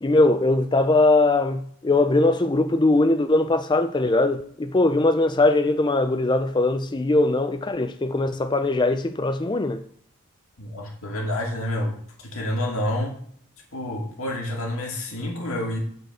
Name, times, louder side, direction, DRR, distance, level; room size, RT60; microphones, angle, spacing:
voice 1, 0.0-9.8, left 2 dB, 20° left, 0.4 m, -21 dB
voice 2, 10.6-13.2 13.7-15.8, left 1 dB, 70° left, 2.2 m, -28 dB
8.0 x 4.5 x 6.2 m
head